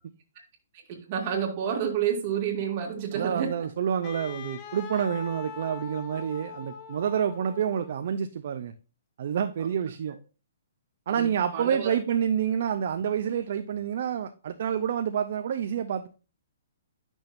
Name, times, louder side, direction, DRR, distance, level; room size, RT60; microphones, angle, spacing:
voice 1, 0.9-3.5 11.2-11.3 11.5-11.9, right 8 dB, 35° right, 2.1 m, -29 dB
voice 2, 3.1-8.7 9.2-10.2 11.1-16.1, right 8 dB, 50° right, 0.6 m, -28 dB
Wind instrument woodwind instrument, 4.0-8.1, left 6 dB, 25° left, 0.7 m, -42 dB
10.5 x 6.2 x 2.6 m
hypercardioid pair, 165°, 0 cm